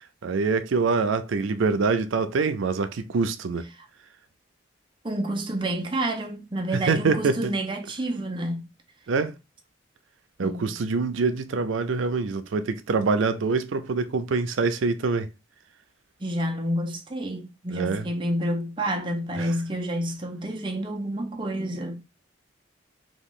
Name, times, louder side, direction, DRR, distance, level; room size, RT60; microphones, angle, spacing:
voice 1, 0.0-3.7 6.7-7.5 9.1-9.3 10.4-15.3 17.7-18.1 19.4-19.5, right 4 dB, 90° right, 0.5 m, -25 dB
voice 2, 5.0-8.7 10.4-10.8 16.2-22.0, right 1 dB, 25° right, 0.6 m, -29 dB
3.0 x 2.4 x 3.7 m
head